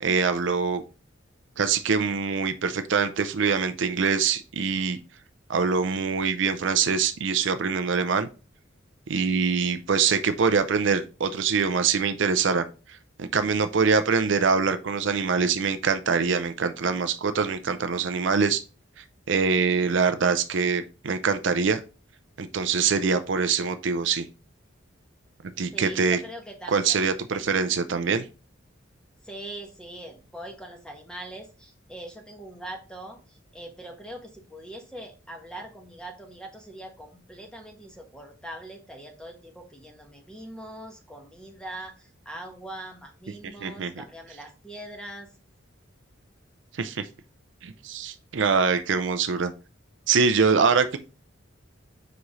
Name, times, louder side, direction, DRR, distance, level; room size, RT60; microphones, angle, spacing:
voice 1, 0.0-0.8 1.6-5.0 5.5-8.3 9.1-12.6 13.2-18.6 19.3-21.8 22.4-24.3 25.6-26.2 26.7-28.3 43.4-43.9 46.8-47.0 47.6-49.5 50.1-51.0, right 5 dB, 65° right, 10 dB, 0.5 m, -24 dB
voice 2, 25.7-27.1 29.2-45.3, right 1 dB, 5° left, 2 dB, 1.2 m, -42 dB
5.1 x 4.8 x 4.1 m, 0.34 s
head